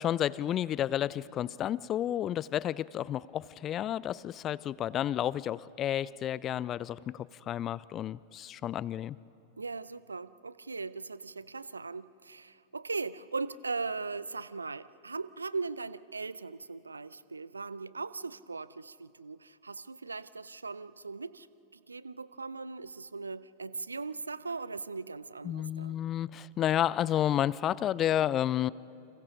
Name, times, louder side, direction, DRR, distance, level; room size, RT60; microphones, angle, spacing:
voice 1, 0.0-9.2 25.4-28.7, left 11 dB, 30° left, 22 dB, 0.4 m, -31 dB
voice 2, 9.6-21.5 21.7-26.0, right 4 dB, 80° right, 18 dB, 0.4 m, -39 dB
29.5 x 26.5 x 3.8 m, 2.8 s
figure-of-eight pair, 90°, 0 cm